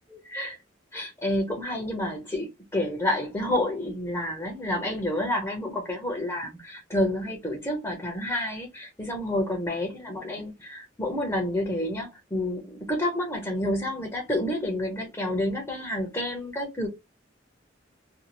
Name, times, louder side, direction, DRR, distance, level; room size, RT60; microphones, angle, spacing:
voice 1, 0.2-0.6 0.9-16.9, left 1 dB, 15° left, 0.6 m, -29 dB
2.6 x 2.4 x 2.8 m
head